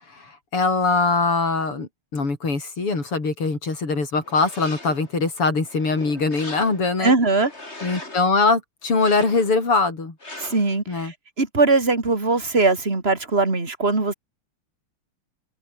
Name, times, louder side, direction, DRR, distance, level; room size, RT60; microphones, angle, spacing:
voice 1, 0.1-7.1 7.8-10.1 10.9-11.1, left 3 dB, 90° left, 6.2 m, -22 dB
sound 1, 4.2-5.1 5.6-7.0 7.4-8.3 8.9-9.7 10.2-10.8, left 2 dB, 30° left, 5.6 m, -40 dB
voice 2, 7.0-7.5 10.4-14.1, right 3 dB, 25° right, 3.8 m, -21 dB
omnidirectional pair, 2.4 m